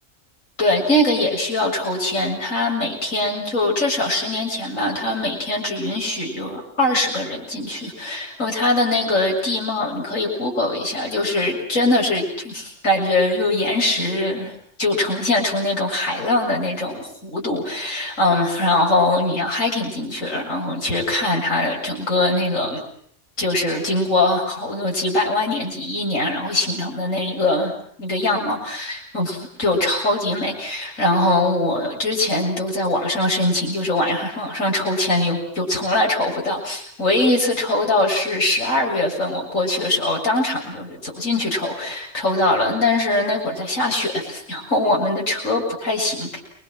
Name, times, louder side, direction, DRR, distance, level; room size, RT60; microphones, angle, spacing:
voice 1, 0.6-22.8 23.4-27.7 28.0-46.4, left 2 dB, 85° left, -1 dB, 7.7 m, -22 dB
30.0 x 23.5 x 7.8 m, 0.64 s
omnidirectional pair, 1.3 m